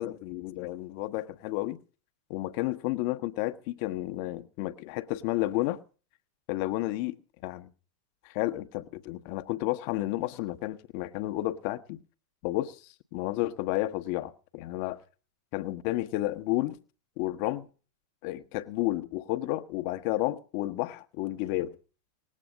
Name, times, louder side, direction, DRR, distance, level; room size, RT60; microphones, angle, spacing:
voice 1, 0.0-1.8 2.3-5.8 6.5-7.2 7.4-7.7 8.2-12.0 12.4-15.0 15.5-16.8 17.2-17.7 18.2-21.7, left 17 dB, 45° left, 1.0 m, -31 dB
19.0 x 8.4 x 6.4 m
figure-of-eight pair, 90°, 0 cm